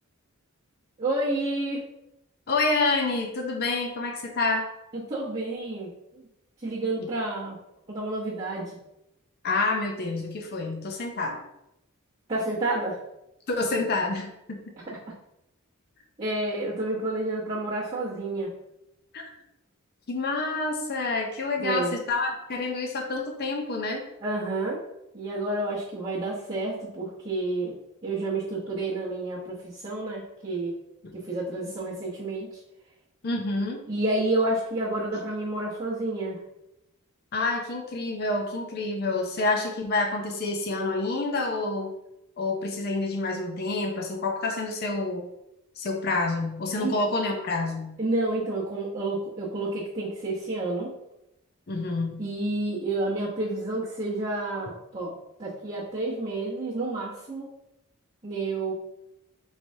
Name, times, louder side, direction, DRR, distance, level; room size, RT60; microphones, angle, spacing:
voice 1, 1.0-1.8 4.9-6.3 6.6-7.6 7.9-8.8 12.3-13.0 16.2-18.5 21.6-21.9 24.2-24.8 25.1-27.7 28.0-30.7 31.1-32.6 33.9-36.4 46.8-46.9 48.0-50.9 52.2-57.5 58.2-58.7, right 2 dB, 30° right, -11 dB, 0.8 m, -30 dB
voice 2, 2.5-4.7 9.4-11.4 13.5-14.6 19.1-19.3 20.1-24.0 31.0-31.1 33.2-33.8 37.3-41.9 42.4-45.3 45.8-48.0 51.7-52.2, left 3 dB, 45° left, 2 dB, 0.5 m, -28 dB
4.5 x 3.1 x 2.7 m, 0.85 s
head